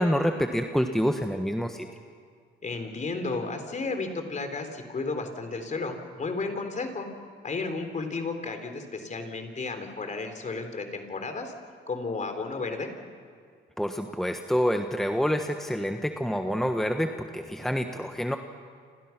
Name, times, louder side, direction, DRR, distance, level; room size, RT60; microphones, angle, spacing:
voice 1, 0.0-1.9 13.8-18.4, equal, ahead, 5 dB, 1.3 m, -27 dB
voice 2, 2.6-7.1 7.4-11.5 11.9-12.9, left 3 dB, 40° left, 6 dB, 4.0 m, -33 dB
29.0 x 26.5 x 6.1 m, 2.1 s
cardioid pair, 90°, 20 cm